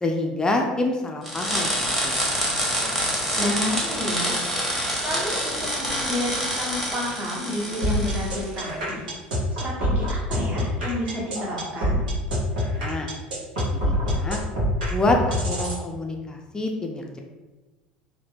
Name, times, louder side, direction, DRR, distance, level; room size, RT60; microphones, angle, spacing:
voice 1, 0.0-2.1 12.8-13.1 13.7-14.4 14.9-17.2, left 2 dB, 15° left, 1 dB, 0.4 m, -27 dB
sound 1, 1.2-8.5, equal, 5° right, 1.0 m, -27 dB
voice 2, 3.4-4.4 5.0-9.0 9.5-12.0, left 1 dB, 30° right, -4 dB, 1.0 m, -30 dB
sound 2, 7.8-15.8, equal, 75° right, 0.9 m, -25 dB
2.8 x 2.2 x 3.3 m, 1.2 s
figure-of-eight pair, 70°, 5 cm